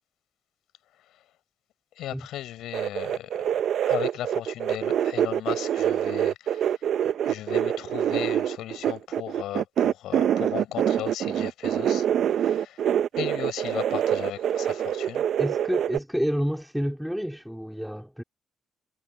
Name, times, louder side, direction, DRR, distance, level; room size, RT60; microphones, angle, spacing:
voice 1, 2.0-3.5 3.8-6.8 7.2-12.9 13.2-15.3, left 13 dB, 85° left, 6.1 m, -36 dB
sound 1, 2.7-16.0, right 10 dB, 70° right, 0.7 m, -25 dB
voice 2, 15.4-18.2, equal, ahead, 2.7 m, -29 dB
cardioid pair, 90°, 0 cm